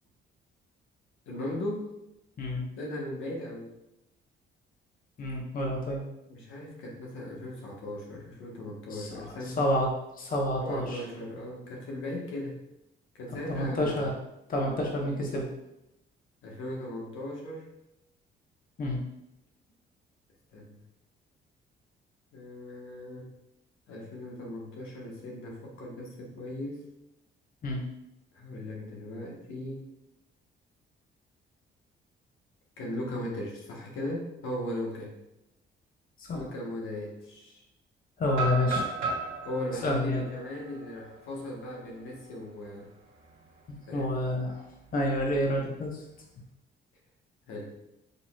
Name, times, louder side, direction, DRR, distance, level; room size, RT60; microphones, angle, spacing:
voice 1, 1.3-2.0 2.8-3.7 6.3-9.7 10.6-12.6 13.1-14.2 16.4-17.7 20.5-20.8 22.3-23.4 23.9-26.8 28.3-29.9 32.8-35.2 36.3-37.6 39.4-42.9 43.9-44.2 47.5-47.8, left 1 dB, 90° left, -2 dB, 1.2 m, -38 dB
voice 2, 5.2-6.0 8.9-9.1 9.4-9.9 10.2-11.0 13.5-14.1 14.5-15.5 18.8-19.0 27.6-27.8 36.2-36.4 38.2-38.9 39.8-40.3 43.9-44.6 44.9-46.0, left 1 dB, 45° left, 0 dB, 1.0 m, -29 dB
sound 1, 38.3-42.2 42.6-42.7 43.2-43.5 44.8-45.7, right 3 dB, 85° right, 1.0 m, -36 dB
6.6 x 3.0 x 2.2 m, 0.86 s
cardioid pair, 90°, 20 cm